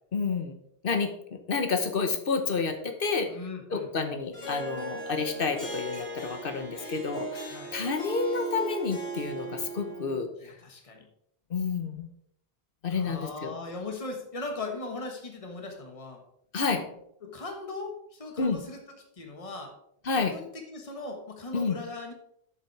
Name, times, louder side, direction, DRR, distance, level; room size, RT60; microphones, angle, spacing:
voice 1, 0.1-0.6 0.8-3.3 3.7-10.3 11.5-12.1 12.8-13.6 16.5-16.8 18.4-18.6 20.0-20.3 21.5-21.8, left 4 dB, 60° left, 7 dB, 1.2 m, -29 dB
voice 2, 3.3-4.2 7.5-7.7 10.4-11.0 12.9-16.2 17.2-19.7 20.3-22.1, left 3 dB, 35° left, 3 dB, 1.4 m, -39 dB
Harp, 4.3-10.1, right 3 dB, 85° left, 3.2 m, -37 dB
7.4 x 7.0 x 4.7 m, 0.72 s
omnidirectional pair, 1.0 m